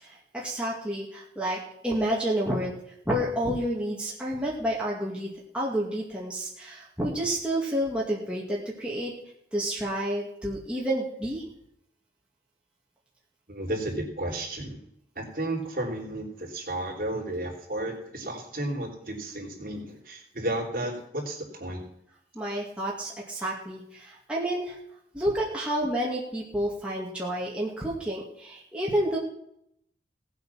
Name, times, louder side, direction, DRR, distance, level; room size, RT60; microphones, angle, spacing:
voice 1, 0.0-2.8 3.1-5.3 5.5-9.1 9.5-11.4 22.3-24.8 25.1-29.2, right 1 dB, 5° right, -5 dB, 2.4 m, -29 dB
voice 2, 13.5-14.8 15.2-21.8, right 1 dB, 50° right, 0 dB, 3.7 m, -33 dB
17.5 x 8.2 x 5.9 m, 0.74 s
head